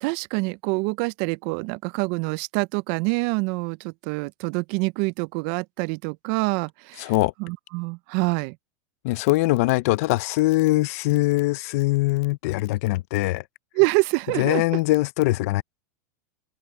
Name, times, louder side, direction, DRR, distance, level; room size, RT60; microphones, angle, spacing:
voice 1, 0.0-7.1 7.4-8.6 13.8-14.6, right 27 dB, 45° right, 0.3 m, -26 dB
voice 2, 7.0-7.3 9.0-13.4 14.4-15.6, left 19 dB, 55° left, 0.5 m, -22 dB
open air
supercardioid pair, 150°, 9 cm